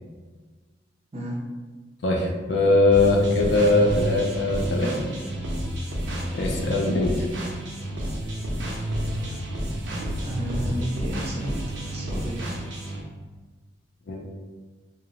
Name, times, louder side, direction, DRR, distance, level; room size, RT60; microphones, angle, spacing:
voice 1, 2.0-4.9 6.3-7.3 14.1-14.3, left 2 dB, 65° left, 0 dB, 0.4 m, -21 dB
sound 1, 2.9-13.0, equal, 80° right, 0.6 m, -30 dB
voice 2, 10.2-11.5 11.9-12.4, right 1 dB, 35° right, -3 dB, 0.5 m, -32 dB
2.7 x 2.0 x 2.8 m, 1.4 s
head